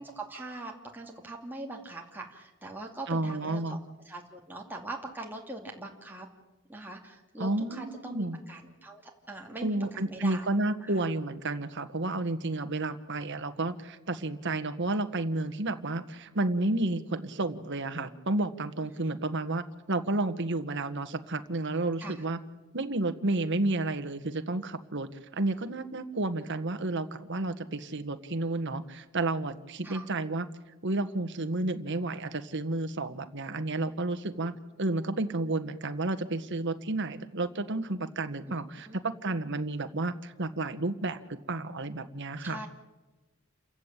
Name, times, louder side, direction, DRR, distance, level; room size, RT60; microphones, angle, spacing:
voice 1, 0.0-3.8 4.0-6.3 6.7-10.4 10.8-11.0 18.9-19.1 22.0-22.2 29.8-30.0 38.5-38.6 38.9-39.0 42.4-42.7, right 2 dB, 10° right, 0 dB, 2.6 m, -42 dB
voice 2, 3.1-3.8 7.4-8.4 9.6-22.4 22.7-30.5 30.8-41.2 41.5-42.7, right 2 dB, 60° right, 9 dB, 1.6 m, -31 dB
29.0 x 15.0 x 9.1 m, 1.1 s
head